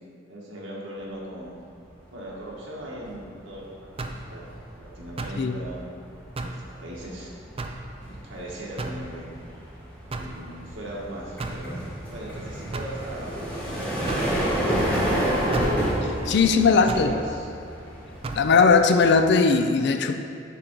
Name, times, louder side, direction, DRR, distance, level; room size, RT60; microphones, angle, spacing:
voice 1, 0.3-1.5 2.1-5.9 6.4-7.4 8.2-9.3 10.2-11.7 12.1-13.5 16.0-17.5 18.0-18.2, right 1 dB, 80° right, -4 dB, 1.6 m, -39 dB
sound 1, 2.1-2.4 2.7-19.5, right 1 dB, 5° left, 1.7 m, -30 dB
sound 2, 4.0-4.3 5.2-5.5 6.4-6.6 7.6-7.9 8.8-9.1 10.1-10.4 11.4-11.7 12.7-13.0 14.1-14.3 15.5-15.8 16.9-17.1 18.2-18.5, right 2 dB, 30° right, 0.4 m, -33 dB
voice 2, 16.3-17.1 18.3-20.2, left 4 dB, 60° left, 7 dB, 0.4 m, -19 dB
10.0 x 3.8 x 4.6 m, 2.4 s
head